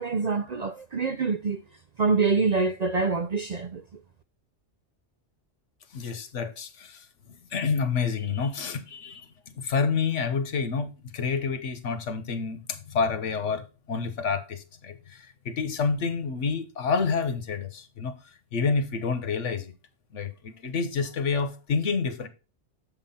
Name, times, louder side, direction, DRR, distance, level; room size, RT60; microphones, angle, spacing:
voice 1, 0.0-1.6 2.0-3.8, right 4 dB, 55° right, 0.4 m, -25 dB
voice 2, 5.9-7.0 7.5-18.1 18.5-19.7 20.1-22.3, left 5 dB, 90° left, 1.4 m, -28 dB
7.9 x 5.7 x 4.2 m
omnidirectional pair, 1.2 m